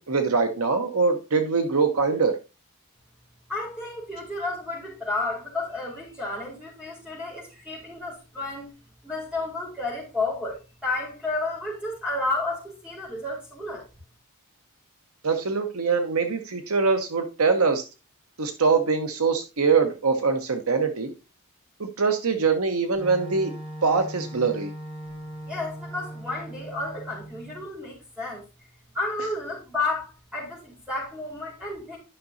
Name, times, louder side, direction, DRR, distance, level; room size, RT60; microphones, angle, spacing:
voice 1, 0.0-2.3 15.2-17.8 18.4-21.1 21.8-23.5 23.8-24.7, right 4 dB, 70° right, 1.0 m, -23 dB
voice 2, 3.5-8.7 9.0-13.8 25.4-28.4 28.9-32.0, left 2 dB, 5° right, 3.9 m, -31 dB
Wind instrument woodwind instrument, 22.9-27.6, right 1 dB, 25° right, 4.9 m, -39 dB
11.0 x 6.0 x 2.7 m
head